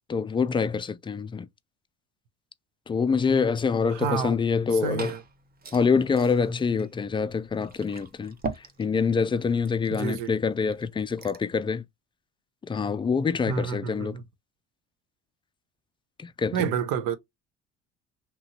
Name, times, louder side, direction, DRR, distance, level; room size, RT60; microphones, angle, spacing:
voice 1, 0.1-1.5 2.9-5.1 5.7-11.8 12.7-14.2 16.2-16.7, left 5 dB, 15° left, 0.3 m, -26 dB
voice 2, 3.9-4.4 4.8-5.2 10.0-10.4 13.5-14.2 16.5-17.2, right 7 dB, 75° right, 0.7 m, -29 dB
Liquid, 4.5-11.6, right 4 dB, 30° right, 0.7 m, -43 dB
3.0 x 2.6 x 2.8 m
supercardioid pair, 75°, 32 cm